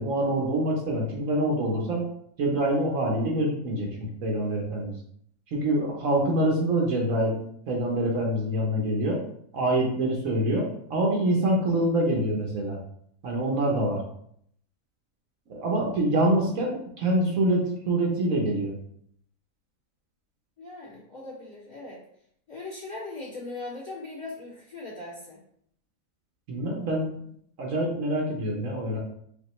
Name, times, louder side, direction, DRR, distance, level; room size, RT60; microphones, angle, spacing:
voice 1, 0.0-2.0 2.4-3.9 4.2-4.9 5.5-7.4 7.7-9.2 9.5-12.8 13.2-14.0 15.5-18.7 26.5-27.1 27.6-29.0, right 1 dB, 65° right, -1 dB, 1.2 m, -25 dB
voice 2, 20.6-22.0 22.5-25.4, left 2 dB, 30° left, -8 dB, 1.9 m, -39 dB
5.2 x 2.7 x 3.1 m, 0.67 s
omnidirectional pair, 1.6 m